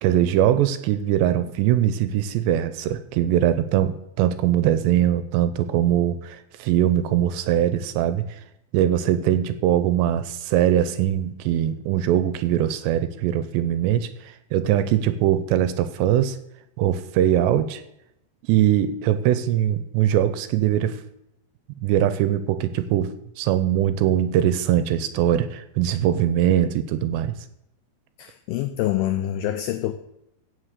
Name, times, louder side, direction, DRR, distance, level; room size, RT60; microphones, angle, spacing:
voice 1, 0.0-8.4 8.7-16.4 16.8-17.8 18.5-21.0 21.8-27.3, right 11 dB, 85° right, 12 dB, 2.8 m, -21 dB
voice 2, 28.2-29.9, left 13 dB, 90° left, 9 dB, 2.1 m, -26 dB
16.5 x 6.5 x 6.6 m, 0.83 s
omnidirectional pair, 5.1 m